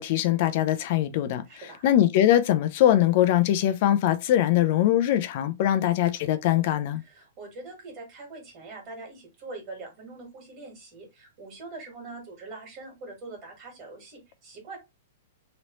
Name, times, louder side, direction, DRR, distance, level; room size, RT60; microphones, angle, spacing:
voice 1, 0.0-1.4 1.8-7.0, left 12 dB, 45° left, 0.5 m, -22 dB
voice 2, 1.4-1.9 7.0-14.8, right 3 dB, 30° right, 1.6 m, -43 dB
3.1 x 2.8 x 3.0 m
hypercardioid pair, 160°, 0 cm